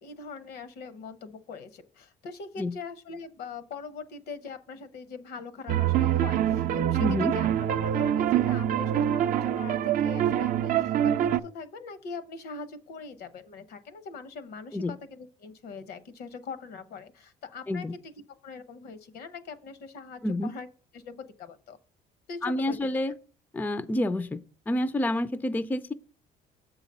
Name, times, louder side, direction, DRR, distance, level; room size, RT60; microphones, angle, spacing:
voice 1, 0.0-18.1 18.4-20.7 20.9-21.8 22.3-22.9, left 4 dB, 70° left, 12 dB, 0.8 m, -42 dB
sound 1, 5.7-11.4, right 10 dB, 55° right, 0.5 m, -25 dB
voice 2, 7.0-7.3 14.7-14.9 17.7-17.9 20.2-20.5 22.4-23.1 23.5-25.9, left 1 dB, 10° left, 14 dB, 0.3 m, -28 dB
7.2 x 4.0 x 5.3 m, 0.39 s
cardioid pair, 110°, 17 cm